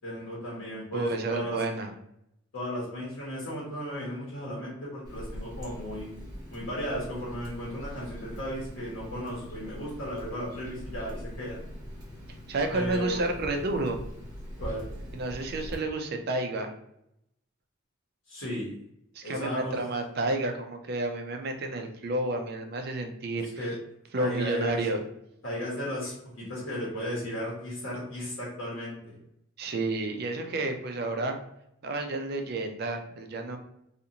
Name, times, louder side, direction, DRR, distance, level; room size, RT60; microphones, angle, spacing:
voice 1, 0.0-1.6 2.5-6.1 6.5-11.6 12.7-13.2 14.6-14.8 18.3-18.7 19.2-19.9 23.6-23.7 24.2-24.8 25.4-29.2, equal, 80° left, -6 dB, 1.1 m, -35 dB
voice 2, 0.9-1.9 12.5-14.0 15.1-16.7 19.2-23.5 24.1-25.0 29.6-31.4 31.8-33.6, right 2 dB, 50° right, 5 dB, 0.4 m, -30 dB
Water tap faucet, 5.0-15.7, equal, 20° right, 0.9 m, -42 dB
2.5 x 2.4 x 2.8 m, 0.78 s
head